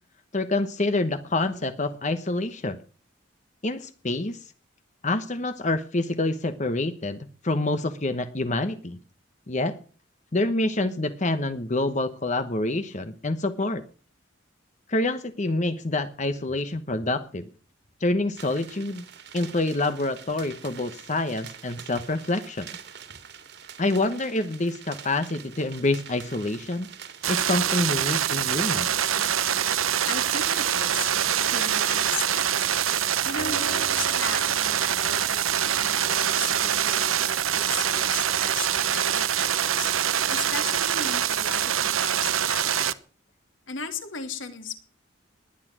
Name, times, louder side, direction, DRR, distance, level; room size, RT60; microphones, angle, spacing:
voice 1, 0.3-2.8 3.6-4.5 5.0-9.0 9.5-9.8 10.3-13.8 14.9-17.5 18.0-19.0 19.3-22.7 23.8-26.9 27.3-28.9, left 2 dB, 35° left, 10 dB, 1.0 m, -27 dB
sound 1, 18.4-33.4, right 8 dB, 55° right, 2.4 m, -45 dB
sound 2, 27.2-42.9, right 9 dB, 90° right, 1.0 m, -24 dB
voice 2, 30.1-31.1 31.5-32.6 33.2-39.9 40.3-42.9 43.7-44.8, left 5 dB, 70° left, 7 dB, 3.1 m, -37 dB
Acoustic guitar, 33.4-36.6, right 2 dB, 55° left, 5.3 m, -42 dB
20.0 x 10.0 x 6.2 m, 0.41 s
head